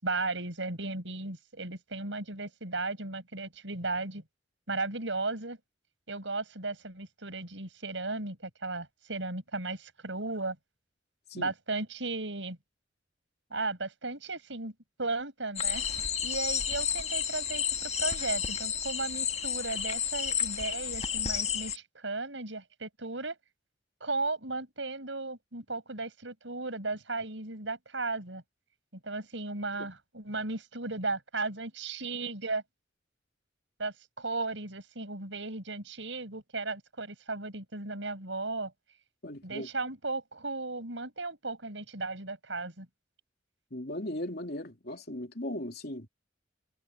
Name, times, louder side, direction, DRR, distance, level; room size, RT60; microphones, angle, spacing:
voice 1, 0.0-4.2 4.7-5.6 6.1-10.6 11.3-12.6 13.5-14.7 15.0-15.8 16.2-23.4 24.0-28.4 29.0-32.6 33.8-38.7 39.4-42.9, right 3 dB, 75° right, 5.8 m, -35 dB
sound 1, 15.6-21.8, left 7 dB, 35° left, 1.7 m, -31 dB
voice 2, 39.2-39.7 43.7-46.1, left 1 dB, 55° left, 3.2 m, -38 dB
head